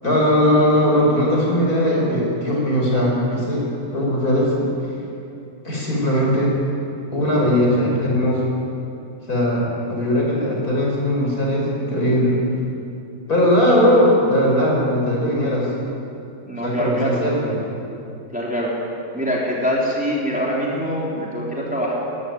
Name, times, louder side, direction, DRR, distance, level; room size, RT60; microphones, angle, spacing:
voice 1, 0.0-4.7 5.6-6.5 7.1-8.4 9.3-12.4 13.3-15.7 16.6-17.5, equal, 55° left, -2 dB, 5.9 m, -19 dB
voice 2, 16.5-17.2 18.3-18.7 19.1-21.9, equal, 5° right, -4 dB, 3.5 m, -24 dB
21.5 x 14.5 x 9.4 m, 2.7 s
omnidirectional pair, 1.9 m